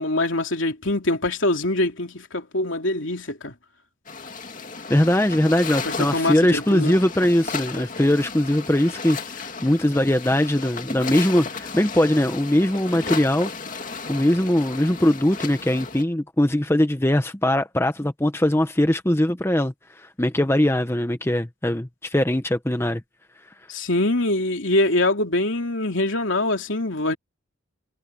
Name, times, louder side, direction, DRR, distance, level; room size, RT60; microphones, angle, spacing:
voice 1, 0.0-3.5 5.8-7.0 23.7-27.2, left 2 dB, 65° left, 3.1 m, -24 dB
sound 1, 4.1-16.0, left 4 dB, 40° left, 2.4 m, -34 dB
voice 2, 4.9-13.5 14.1-23.0, left 1 dB, 10° left, 0.8 m, -21 dB
head